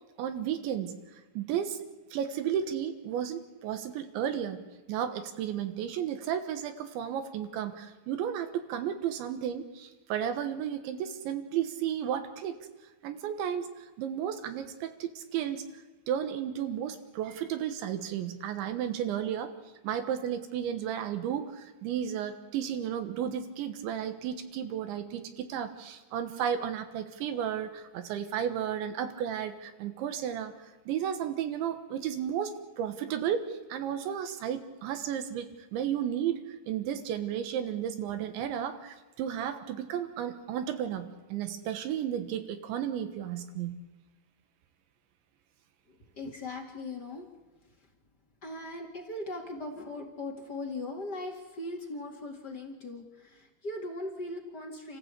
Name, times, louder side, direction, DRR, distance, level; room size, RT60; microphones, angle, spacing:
voice 1, 0.2-1.0 1.4-1.8 2.1-4.6 4.9-12.6 13.0-15.7 16.1-19.5 19.8-43.8, right 9 dB, 75° right, 8 dB, 3.6 m, -33 dB
voice 2, 45.9-47.3 47.8-47.9 48.4-55.0, left 2 dB, 40° left, 3 dB, 1.5 m, -39 dB
29.5 x 15.0 x 8.3 m, 1.2 s
omnidirectional pair, 5.4 m